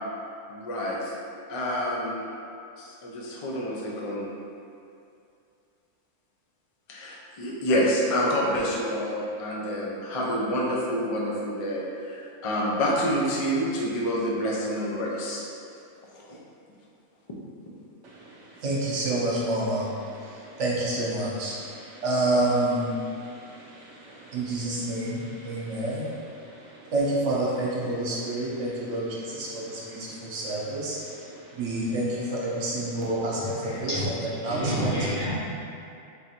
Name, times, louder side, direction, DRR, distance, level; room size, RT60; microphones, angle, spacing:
voice 1, 0.5-1.1 1.5-2.3 2.8-4.3 6.9-15.4 16.1-16.4, equal, 50° left, -4 dB, 0.4 m, -28 dB
voice 2, 18.6-19.8 20.6-21.6 22.0-22.9 24.3-26.1 26.9-31.0 31.6-33.9 34.4-34.9, right 1 dB, 65° right, -5 dB, 1.1 m, -28 dB
voice 3, 33.2-35.3, equal, 65° left, -12 dB, 1.8 m, -30 dB
3.7 x 2.5 x 4.3 m, 2.5 s
omnidirectional pair, 1.4 m